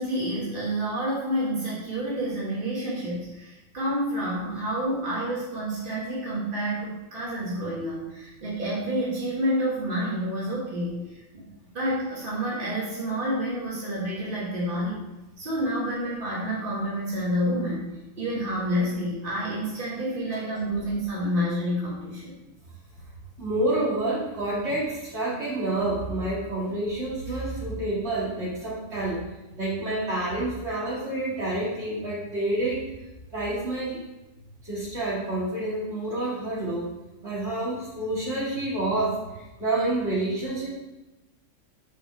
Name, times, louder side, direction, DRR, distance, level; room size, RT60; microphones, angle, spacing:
voice 1, 0.0-11.4 11.7-15.0 15.4-17.8 18.2-22.3, equal, 40° right, -8 dB, 2.5 m, -29 dB
voice 2, 23.4-29.2 29.6-32.8 33.3-34.0 34.6-36.9 37.2-40.7, right 2 dB, 55° right, -7 dB, 2.7 m, -28 dB
6.2 x 4.8 x 6.3 m, 1.0 s
omnidirectional pair, 1.4 m